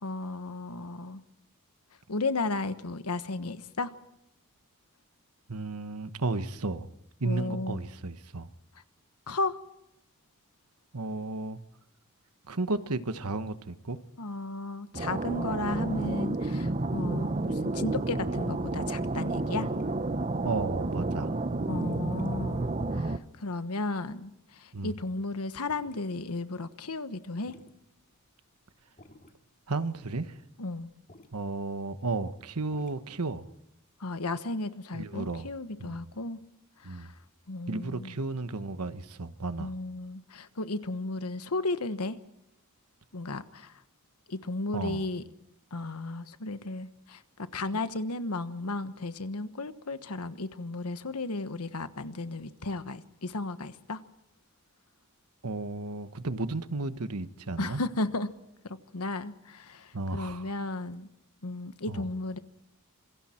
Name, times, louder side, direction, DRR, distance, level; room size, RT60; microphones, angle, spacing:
voice 1, 0.0-1.2 2.1-3.9 7.2-7.8 9.3-9.6 14.2-19.7 21.7-27.6 30.6-30.9 34.0-36.4 36.8-37.1 37.5-38.1 39.6-42.2 43.1-43.7 44.3-45.2 45.7-54.0 57.6-58.3 58.6-61.1 61.4-62.4, left 2 dB, 85° left, 1.3 m, -34 dB
voice 2, 5.5-6.9 7.2-8.5 10.9-11.6 12.5-14.0 20.4-21.3 24.7-24.9 29.7-30.4 31.3-33.4 34.9-35.5 35.8-36.0 36.8-37.1 37.7-39.7 44.7-45.1 47.7-47.8 55.4-57.8 59.9-60.5 61.9-62.1, right 3 dB, 85° right, 1.2 m, -33 dB
sound 1, 14.9-23.2, right 2 dB, 30° right, 0.8 m, -30 dB
sound 2, 19.3-19.4 19.7-21.0 21.3-21.4 21.7-22.8 23.3-23.5 23.9-24.0 24.5-25.4 25.7-26.1 26.3-26.4 26.8-26.9 27.1-27.2 27.4-31.4 32.4-33.0, left 1 dB, 35° left, 2.3 m, -56 dB
27.0 x 22.5 x 4.4 m
head